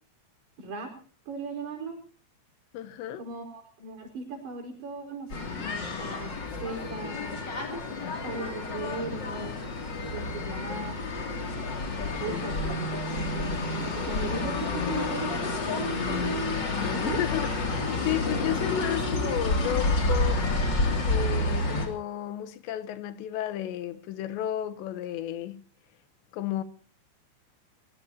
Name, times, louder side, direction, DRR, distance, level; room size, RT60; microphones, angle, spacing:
voice 1, 0.6-0.9 1.3-2.0 3.2-7.3 8.2-9.6 10.1-11.0 12.2-16.4 16.9-17.2, right 3 dB, 65° right, 6.7 m, -38 dB
voice 2, 2.7-3.2 16.8-20.5 21.1-25.6 26.3-26.6, left 12 dB, 80° left, 3.2 m, -33 dB
sound 1, 5.3-21.9, left 2 dB, 30° left, 2.7 m, -29 dB
22.0 x 20.5 x 2.8 m
omnidirectional pair, 5.1 m